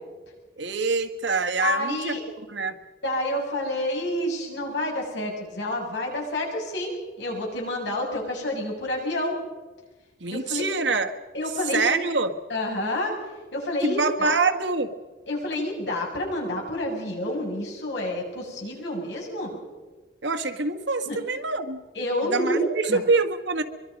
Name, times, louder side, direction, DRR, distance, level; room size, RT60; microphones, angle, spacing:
voice 1, 0.6-2.8 10.2-11.1 11.7-12.3 13.8-14.9 20.2-21.8 22.2-23.6, right 4 dB, 85° right, 7 dB, 1.7 m, -25 dB
voice 2, 1.6-2.2 3.0-9.4 10.2-10.6 11.3-11.9 12.5-13.2 13.5-14.4 15.3-19.6 21.1-21.2 21.9-23.0, left 1 dB, 80° left, -1 dB, 7.7 m, -29 dB
24.0 x 23.5 x 5.4 m, 1.3 s
head